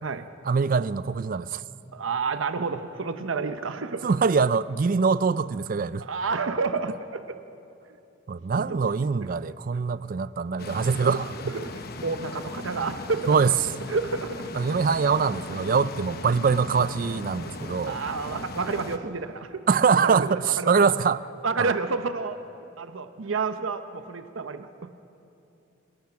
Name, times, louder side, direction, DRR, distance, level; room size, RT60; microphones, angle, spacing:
voice 1, 0.4-1.6 4.0-6.0 8.3-11.3 13.3-13.5 14.5-18.0 19.7-21.2 21.6-21.7, right 5 dB, 45° right, 0.4 m, -23 dB
voice 2, 1.9-4.1 6.0-7.4 8.5-8.8 11.5-13.4 13.9-14.5 17.9-19.6 20.0-20.9 21.4-22.4 22.8-24.7, right 4 dB, 90° right, 0.8 m, -30 dB
sound 1, 10.6-19.0, left 3 dB, 50° left, 1.0 m, -38 dB
25.5 x 19.0 x 5.9 m
head